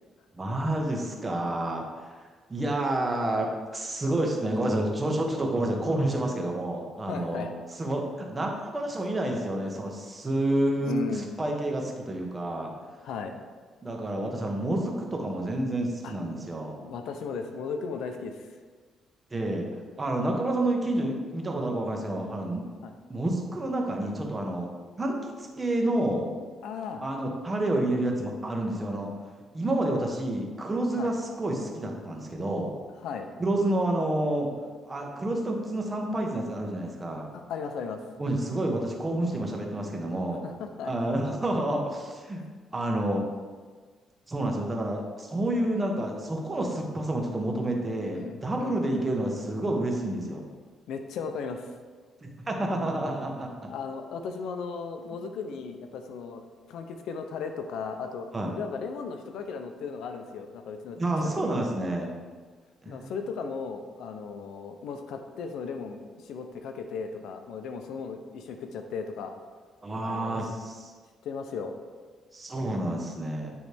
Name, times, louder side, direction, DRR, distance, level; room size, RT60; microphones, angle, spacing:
voice 1, 0.3-1.8 2.5-7.5 7.8-8.0 8.3-12.7 13.8-16.8 19.3-19.7 20.0-22.6 23.1-24.7 25.0-26.3 27.0-29.1 29.5-32.7 33.4-34.5 34.9-37.3 38.2-40.4 40.8-42.5 42.7-43.2 44.3-50.5 52.2-53.5 58.3-58.5 61.0-62.1 62.8-63.1 69.8-70.9 72.3-73.5, right 1 dB, 25° right, 1 dB, 1.1 m, -29 dB
voice 2, 7.1-7.5 10.8-11.3 13.0-13.4 16.0-16.1 16.8-18.5 22.8-22.9 26.6-27.0 31.0-31.1 33.0-33.3 37.3-38.0 40.4-40.9 42.4-42.5 48.1-49.0 50.9-51.7 53.7-56.4 56.7-61.0 61.2-61.5 62.9-69.3 70.0-70.4 71.2-71.7, left 5 dB, 80° left, 6 dB, 0.5 m, -36 dB
9.1 x 3.1 x 3.4 m, 1.5 s
cardioid pair, 90°, 0 cm